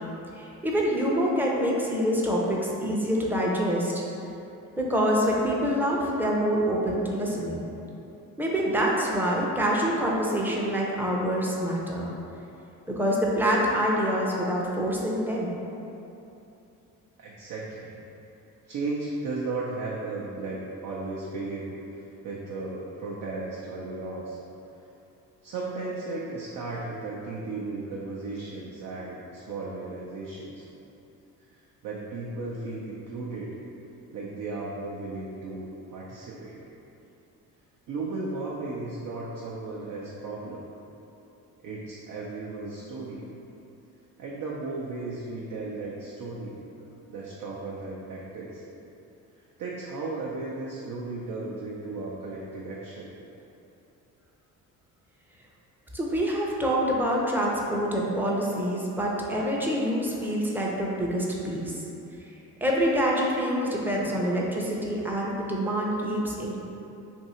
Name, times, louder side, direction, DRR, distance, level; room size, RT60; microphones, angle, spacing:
voice 1, 0.4-4.0 4.8-7.6 8.4-12.1 12.9-15.5 55.9-61.8 62.6-66.6, equal, 5° right, -3 dB, 0.6 m, -26 dB
voice 2, 17.2-18.0 18.7-21.8 22.2-24.4 25.4-30.7 31.8-33.5 34.1-36.6 37.9-40.7 41.6-43.3 44.2-46.6 47.1-48.6 49.6-53.1, right 3 dB, 55° right, -5 dB, 0.6 m, -35 dB
2.7 x 2.6 x 4.2 m, 2.9 s
supercardioid pair, 75°, 38 cm